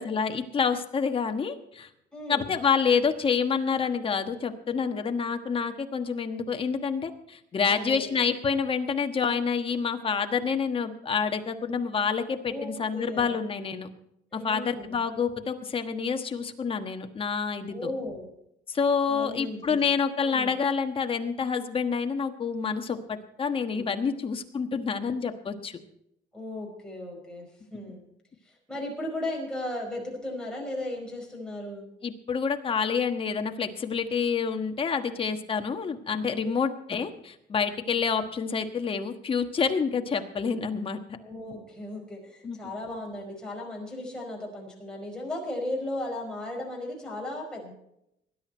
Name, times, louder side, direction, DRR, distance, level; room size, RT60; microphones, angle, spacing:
voice 1, 0.0-1.9 2.3-13.9 14.3-17.9 18.7-25.8 32.0-41.0 42.4-42.6, left 6 dB, 30° left, 6 dB, 1.3 m, -28 dB
voice 2, 2.1-2.6 7.6-8.2 12.4-13.3 14.3-15.0 17.7-18.3 19.1-19.8 20.2-20.5 23.7-24.1 26.3-28.0 28.4-31.9 41.2-47.7, left 1 dB, 5° left, -2 dB, 5.0 m, -36 dB
19.5 x 11.0 x 4.5 m, 0.79 s
cardioid pair, 145°, 18 cm